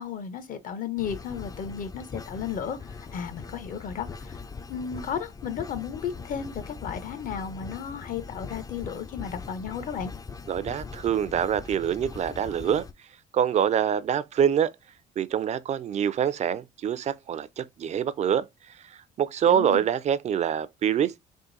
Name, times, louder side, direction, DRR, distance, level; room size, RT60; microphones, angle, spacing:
voice 1, 0.0-4.4 4.7-10.1 19.5-19.8, left 7 dB, 55° left, 0.9 m, -34 dB
sound 1, 1.0-12.9, left 5 dB, 20° left, 0.4 m, -41 dB
voice 2, 10.5-12.8 13.3-14.7 15.2-18.4 19.2-21.1, right 9 dB, 40° right, 0.4 m, -25 dB
3.7 x 2.5 x 3.9 m
cardioid pair, 110°, 17 cm